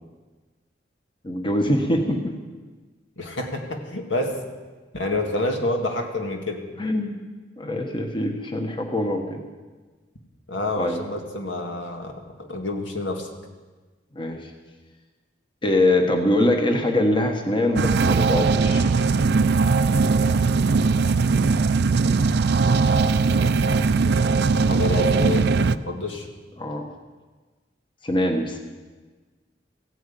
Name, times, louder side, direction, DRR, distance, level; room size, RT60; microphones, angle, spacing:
voice 1, 1.2-2.2 6.8-7.2 7.6-9.4 10.8-11.0 14.1-14.5 15.6-18.9 23.6-23.8 26.6-26.9 28.0-28.6, left 1 dB, 25° left, 4 dB, 1.2 m, -23 dB
voice 2, 3.2-4.4 4.9-6.6 10.5-13.3 24.7-26.3, left 2 dB, 80° left, 3 dB, 1.9 m, -28 dB
sound 1, 17.8-25.8, right 4 dB, 60° right, 0.4 m, -20 dB
15.5 x 9.2 x 8.3 m, 1.3 s
head